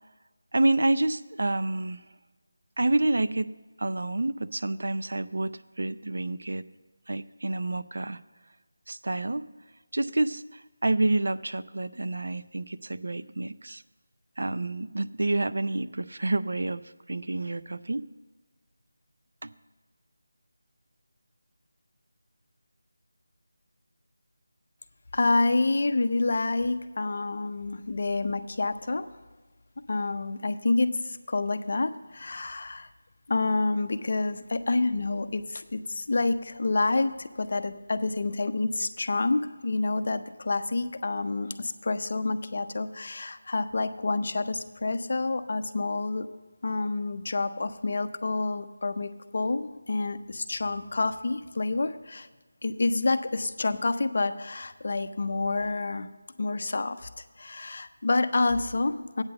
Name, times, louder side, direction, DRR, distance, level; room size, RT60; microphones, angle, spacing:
voice 1, 0.5-2.0 2.8-3.5 3.8-5.5 5.8-6.7 7.1-8.2 8.9-9.5 9.9-13.8 14.4-18.0 19.4-19.5, right 2 dB, 65° right, 13 dB, 0.4 m, -28 dB
voice 2, 25.1-29.1 29.9-32.9 33.3-46.3 46.6-52.3 52.6-56.1 56.4-57.1 57.4-59.2, left 3 dB, 45° left, 11 dB, 0.5 m, -28 dB
8.8 x 5.9 x 7.7 m, 1.3 s
figure-of-eight pair, 175°, 0 cm